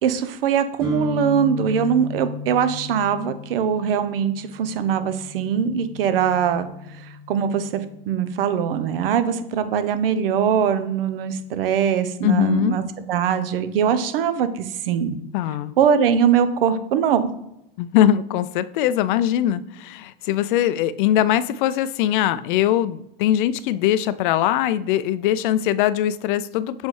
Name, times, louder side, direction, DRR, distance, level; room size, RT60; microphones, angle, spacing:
voice 1, 0.0-6.7 7.3-15.2 15.8-17.3, right 8 dB, 70° right, 0.8 m, -22 dB
sound 1, 0.8-8.6, left 3 dB, 20° right, 2.1 m, -35 dB
voice 2, 12.2-12.8 15.3-15.7 17.8-26.9, left 11 dB, 60° left, 0.4 m, -21 dB
7.2 x 4.1 x 3.2 m
hypercardioid pair, 115°, 29 cm